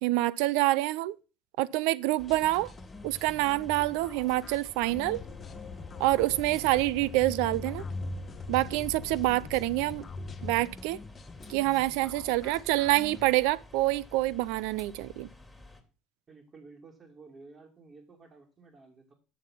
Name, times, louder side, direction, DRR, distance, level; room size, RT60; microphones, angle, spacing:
voice 1, 0.0-1.1 1.6-2.7 3.0-5.2 6.0-7.8 8.5-10.0 10.4-11.0 11.5-15.3, right 18 dB, 80° right, 0.5 m, -27 dB
sound 1, 2.2-15.8, left 2 dB, ahead, 2.6 m, -52 dB
sound 2, 2.3-13.3, left 3 dB, 35° left, 1.5 m, -48 dB
sound 3, 4.9-10.6, left 4 dB, 55° left, 1.4 m, -41 dB
voice 2, 16.3-19.1, right 3 dB, 35° right, 2.7 m, -53 dB
7.3 x 7.3 x 5.6 m
supercardioid pair, 80°, 0 cm